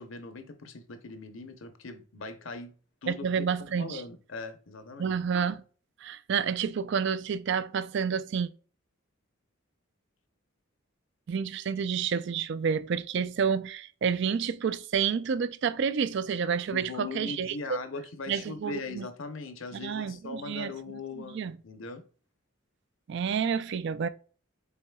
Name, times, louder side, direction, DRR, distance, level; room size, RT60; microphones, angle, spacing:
voice 1, 0.0-2.7 3.0-5.1 16.7-21.4 21.6-22.0, left 3 dB, 65° left, 0.7 m, -40 dB
voice 2, 3.1-4.0 5.0-5.6 6.0-8.5 11.3-17.8 18.3-19.1 19.7-21.6 23.1-24.1, right 6 dB, 55° right, 0.3 m, -29 dB
5.6 x 4.0 x 2.3 m
head